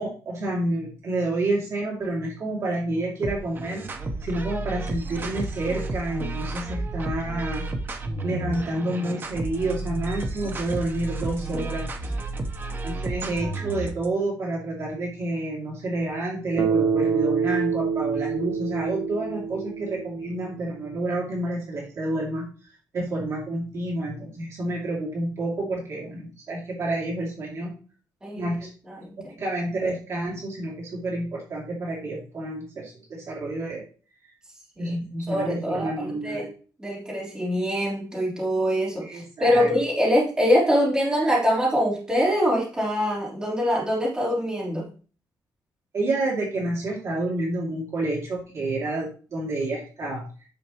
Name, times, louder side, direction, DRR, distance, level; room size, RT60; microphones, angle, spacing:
voice 1, 0.0-3.9 4.2-7.7 8.2-11.9 12.8-22.5 22.9-27.7 28.3-28.7 29.4-33.8 34.8-36.5 39.0-39.7 45.9-50.2, right 2 dB, 45° right, -3 dB, 2.6 m, -29 dB
sound 1, 3.2-14.1, right 2 dB, 30° right, 0.9 m, -32 dB
Bass guitar, 16.6-20.8, right 6 dB, 65° right, 1.2 m, -26 dB
voice 2, 28.9-29.3 34.8-34.9 35.3-36.5 36.8-44.9, equal, 10° right, -6 dB, 3.6 m, -24 dB
10.0 x 6.6 x 3.0 m, 0.39 s
wide cardioid pair, 170°, 7 cm